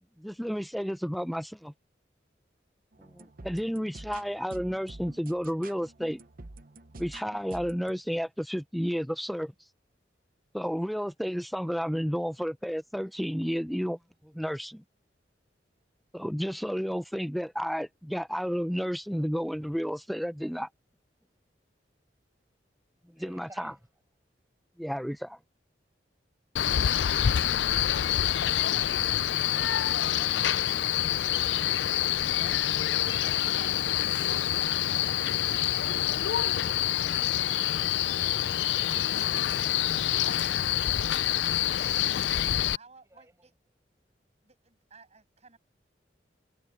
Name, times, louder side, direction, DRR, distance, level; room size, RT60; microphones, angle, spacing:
voice 1, 0.2-1.7 3.0-6.2 7.0-9.5 10.5-14.0 14.2-14.8 16.1-20.7 23.2-23.7 24.8-25.4, equal, ahead, 0.7 m, -32 dB
sound 1, 2.9-7.9, right 2 dB, 55° right, 1.0 m, -47 dB
voice 2, 23.1-23.8 31.9-32.7 37.3-38.3 43.0-43.5, right 2 dB, 15° right, 6.3 m, -57 dB
Male speech man speaking, 26.6-42.8, left 11 dB, 85° left, 0.4 m, -26 dB
voice 3, 42.7-43.5 44.4-45.6, right 4 dB, 40° right, 6.5 m, -56 dB
head